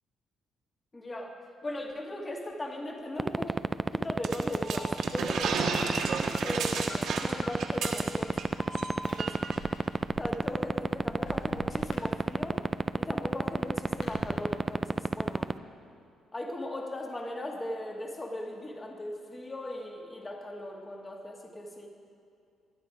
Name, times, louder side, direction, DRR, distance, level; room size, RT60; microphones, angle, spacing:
voice 1, 0.9-1.4 1.6-3.6 3.9-5.8 6.4-8.4 9.2-9.4 10.2-12.6 13.0-15.5 16.3-21.9, left 1 dB, 25° left, 1 dB, 1.9 m, -38 dB
sound 1, 3.2-15.5, right 3 dB, 25° right, 0.4 m, -25 dB
sound 2, 4.2-8.5 8.7-8.9 9.2-9.6, right 5 dB, 80° right, 1.6 m, -33 dB
Alarm, 4.5-12.6 13.0-14.2, left 1 dB, 85° left, 4.3 m, -46 dB
19.5 x 11.0 x 4.9 m, 2.4 s
cardioid pair, 90°, 0 cm